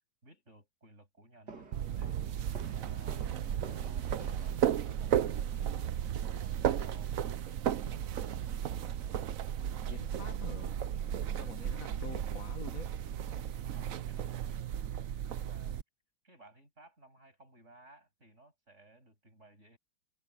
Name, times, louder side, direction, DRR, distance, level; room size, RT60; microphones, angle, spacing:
voice 1, 0.2-3.4 3.8-5.8 6.4-8.6 13.6-14.6 15.3-15.8 16.2-19.8, right 2 dB, 45° right, 8.6 m, -59 dB
sound 1, 1.5-5.2, right 4 dB, 80° right, 3.3 m, -49 dB
sound 2, 1.7-15.8, right 9 dB, 60° right, 1.1 m, -34 dB
voice 2, 9.9-10.8 11.3-12.9, left 5 dB, 55° left, 2.0 m, -46 dB
omnidirectional pair, 1.8 m